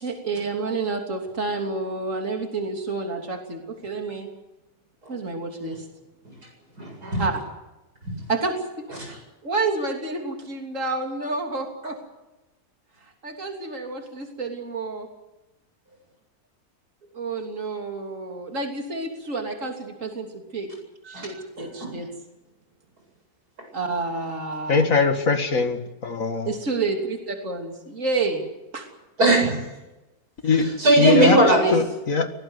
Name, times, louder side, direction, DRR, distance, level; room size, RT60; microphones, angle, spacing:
voice 1, 0.0-4.3 5.1-5.9 7.2-7.4 8.3-8.6 8.9-9.1 9.4-12.0 13.2-15.1 17.1-20.7 21.0-22.1 23.7-24.9 26.4-28.4 28.7-28.9, right 3 dB, 55° right, 2 dB, 3.5 m, -29 dB
voice 2, 6.8-7.2 21.1-21.3 21.8-21.9 29.2-29.5 30.5-31.8, right 2 dB, 80° right, 2 dB, 8.7 m, -19 dB
voice 3, 24.7-26.5 30.4-31.4 31.7-32.3, left 4 dB, 60° left, 7 dB, 2.3 m, -21 dB
24.0 x 18.5 x 8.1 m, 1.0 s
omnidirectional pair, 1.6 m